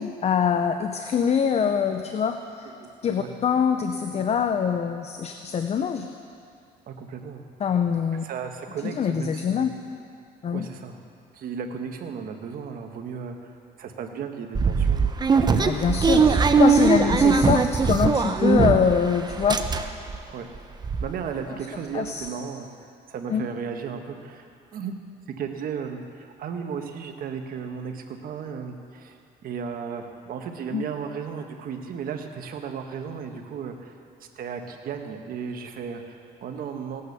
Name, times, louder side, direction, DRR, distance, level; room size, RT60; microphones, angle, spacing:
voice 1, 0.0-2.7 3.0-6.1 7.6-8.2 8.8-9.7 10.4-10.7 15.6-19.7 21.9-22.3 23.3-23.5 30.7-30.8, left 7 dB, 40° left, 7 dB, 0.7 m, -24 dB
voice 2, 6.9-7.4 8.2-9.6 10.5-11.0 11.3-15.2 16.3-16.4 20.3-20.5 21.0-22.7 23.1-24.4 24.7-24.9 25.4-33.9 34.2-37.0, right 6 dB, 60° right, 4 dB, 1.5 m, -35 dB
sound 1, 14.5-19.0 19.3-20.2 20.5-20.6 20.8-21.1, right 5 dB, 25° right, 0.7 m, -20 dB
17.0 x 9.2 x 6.8 m, 2.5 s
cardioid pair, 110°, 17 cm